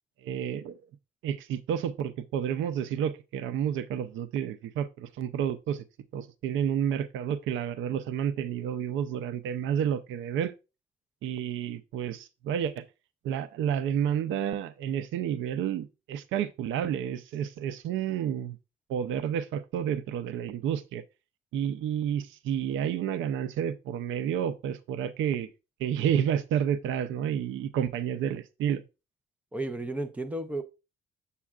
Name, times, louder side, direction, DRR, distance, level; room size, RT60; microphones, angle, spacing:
voice 1, 0.2-0.8 1.2-5.8 6.1-10.5 11.2-12.9 13.2-18.6 18.9-21.0 21.5-25.5 25.8-28.8, right 9 dB, 75° right, 0.6 m, -30 dB
voice 2, 29.5-30.6, right 2 dB, 5° right, 0.5 m, -33 dB
7.3 x 6.9 x 2.4 m
cardioid pair, 170°, 20 cm